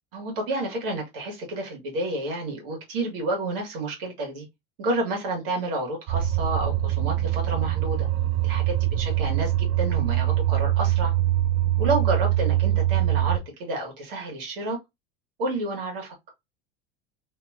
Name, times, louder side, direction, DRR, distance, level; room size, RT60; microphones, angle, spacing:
voice 1, 0.1-4.4 4.8-8.1 8.4-11.1 11.8-14.8 15.4-16.1, right 2 dB, 70° right, 1.6 m, -30 dB
sound 1, 6.1-13.4, right 13 dB, 55° right, 0.7 m, -23 dB
2.9 x 2.7 x 2.4 m
hypercardioid pair, 80°, 29 cm